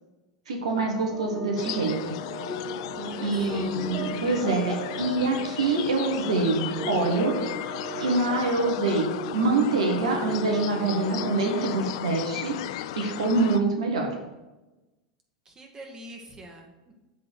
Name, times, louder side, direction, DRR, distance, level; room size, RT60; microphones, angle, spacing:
voice 1, 0.5-2.2 3.2-7.3 8.0-12.5 13.0-14.1, right 3 dB, 75° right, 2 dB, 1.2 m, -25 dB
sound 1, 1.1-12.0, right 2 dB, 10° left, 1.7 m, -37 dB
sound 2, 1.6-13.6, left 13 dB, 60° left, 0.3 m, -35 dB
voice 2, 2.9-3.7 15.5-16.9, right 1 dB, 25° right, 1 dB, 1.7 m, -45 dB
7.5 x 3.8 x 6.1 m, 1.1 s
hypercardioid pair, 90°, 3 cm